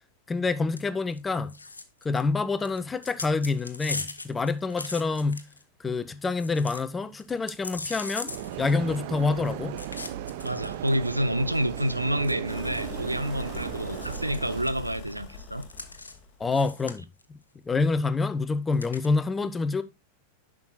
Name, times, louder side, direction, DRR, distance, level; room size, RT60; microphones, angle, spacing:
voice 1, 0.3-1.5 2.0-5.4 5.8-8.3 8.6-9.7 16.4-17.1 17.7-19.8, left 4 dB, 15° left, 0.5 m, -27 dB
sound 1, 0.7-0.8 1.1-1.2 1.5-2.2 2.6-5.6 6.0-6.1 6.2-6.8 7.2-9.2 9.8-10.9 11.7-11.8 12.2-13.6 13.9-14.8 15.6-16.2 16.5-17.2 18.7-19.1, left 3 dB, 80° left, 0.7 m, -39 dB
sound 2, 8.3-14.6, right 11 dB, 50° right, 0.7 m, -36 dB
voice 2, 10.4-15.6, equal, 85° right, 0.5 m, -28 dB
sound 3, 12.5-16.5, left 3 dB, 35° left, 2.0 m, -41 dB
10.5 x 6.2 x 2.3 m
figure-of-eight pair, 90°, 0 cm